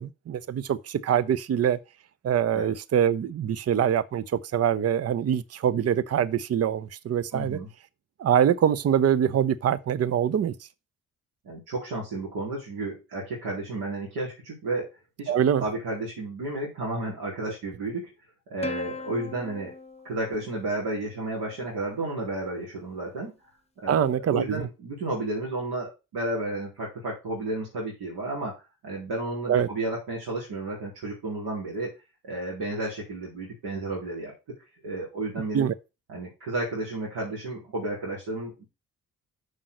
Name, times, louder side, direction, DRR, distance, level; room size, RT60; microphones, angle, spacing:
voice 1, 0.0-1.8 2.2-7.6 8.2-10.5 15.3-15.6 23.9-24.6 29.5-29.7 35.5-35.7, right 9 dB, 35° right, 0.7 m, -24 dB
voice 2, 7.3-7.7 11.4-14.9 15.2-15.3 15.6-18.1 18.5-19.7 20.0-23.3 23.8-31.9 32.2-34.3 34.8-35.7 36.1-38.6, right 2 dB, 65° right, 4.2 m, -32 dB
Plucked string instrument, 18.6-21.4, left 2 dB, 15° left, 1.1 m, -40 dB
6.6 x 5.5 x 6.3 m
hypercardioid pair, 45°, 42 cm